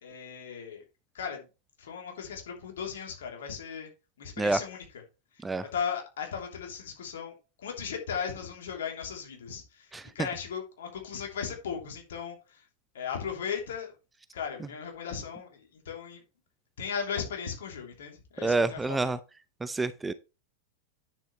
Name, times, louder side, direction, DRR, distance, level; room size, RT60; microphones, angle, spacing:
voice 1, 0.0-0.8 1.1-1.5 1.8-3.9 4.2-4.8 5.7-9.9 10.1-12.6 12.9-13.9 14.3-16.2 16.8-19.1, left 7 dB, 60° left, 3.0 m, -37 dB
voice 2, 18.4-19.2 19.6-20.1, right 3 dB, 10° right, 0.6 m, -28 dB
9.7 x 7.2 x 3.1 m
figure-of-eight pair, 90°, 0 cm